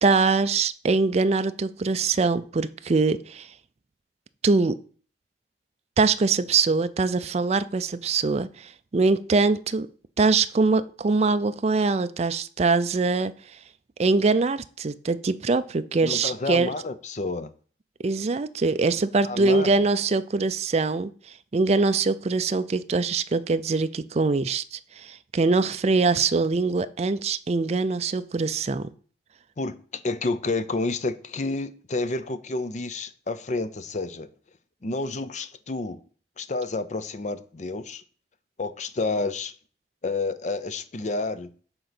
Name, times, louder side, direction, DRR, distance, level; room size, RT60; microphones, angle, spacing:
voice 1, 0.0-3.5 4.4-4.8 6.0-9.9 10.2-13.3 14.0-16.7 18.0-21.1 21.5-28.9, right 4 dB, 35° right, 0.4 m, -23 dB
voice 2, 16.0-17.5 19.2-19.7 29.6-34.3 34.8-36.0 36.4-38.0 38.6-39.5 40.0-41.5, left 3 dB, 40° left, 0.6 m, -30 dB
7.9 x 3.8 x 6.0 m
head